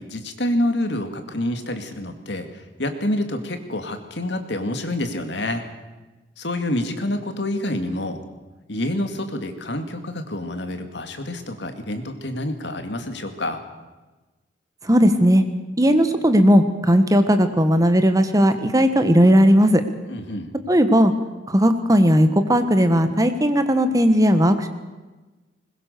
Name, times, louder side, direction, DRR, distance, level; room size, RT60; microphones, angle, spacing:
voice 1, 0.0-2.5 2.8-5.6 6.4-8.2 8.7-13.6 20.1-20.5, left 1 dB, 70° left, 7 dB, 2.3 m, -27 dB
voice 2, 14.9-15.4 15.8-19.8 20.7-21.1 21.5-24.7, equal, 20° right, 9 dB, 1.3 m, -16 dB
21.0 x 20.5 x 6.7 m, 1.2 s
head